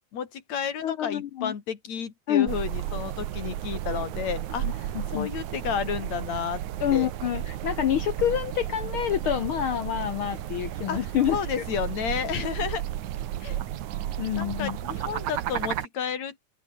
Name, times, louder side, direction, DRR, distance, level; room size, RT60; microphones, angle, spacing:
voice 1, 0.1-6.6 6.9-7.1 10.9-11.0 11.3-12.8 13.4-13.6 14.4-16.4, left 7 dB, 60° left, 3.9 m, -31 dB
voice 2, 0.8-1.5 2.3-2.5 4.6-5.3 6.8-11.6 14.2-14.8, left 11 dB, 80° left, 1.1 m, -27 dB
sound 1, 2.5-15.9, right 12 dB, 75° right, 2.6 m, -33 dB
open air
omnidirectional pair, 3.6 m